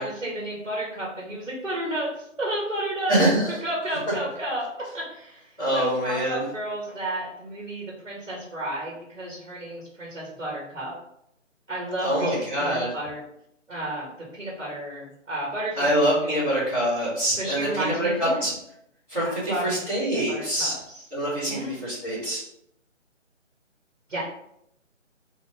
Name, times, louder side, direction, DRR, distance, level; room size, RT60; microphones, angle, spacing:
voice 1, 0.0-3.2 3.6-4.7 4.9-10.9 11.7-13.2 13.7-16.4 17.4-18.4 19.2-19.8 20.1-21.0 21.5-21.7 24.1-24.2, right 1 dB, 65° right, -4 dB, 1.5 m, -32 dB
voice 2, 3.1-3.6 5.6-6.4 12.0-12.9 15.7-18.5 19.1-20.7 21.1-22.4, right 1 dB, 5° left, -22 dB, 1.2 m, -25 dB
3.8 x 2.6 x 3.4 m, 0.76 s
figure-of-eight pair, 155°, 38 cm